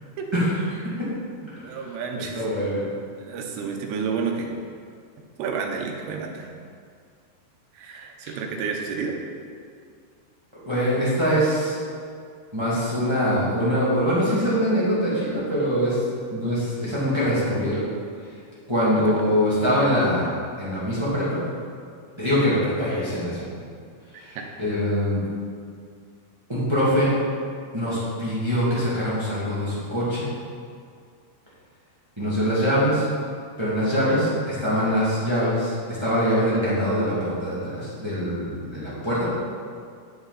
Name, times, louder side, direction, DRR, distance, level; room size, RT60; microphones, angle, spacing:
voice 1, 1.6-2.4 3.2-4.5 5.4-6.5 7.7-9.2 19.0-19.2, right 5 dB, 75° right, 1 dB, 3.0 m, -30 dB
voice 2, 2.3-2.9 10.5-11.8 12.5-16.0 16.3-17.8 18.7-20.3 20.6-21.4 22.2-23.4 24.1-25.2 26.5-27.1 27.7-30.3 32.2-33.0 33.6-35.7 36.0-39.2, equal, 15° right, -10 dB, 1.0 m, -23 dB
9.9 x 8.4 x 4.1 m, 2.2 s
omnidirectional pair, 5.0 m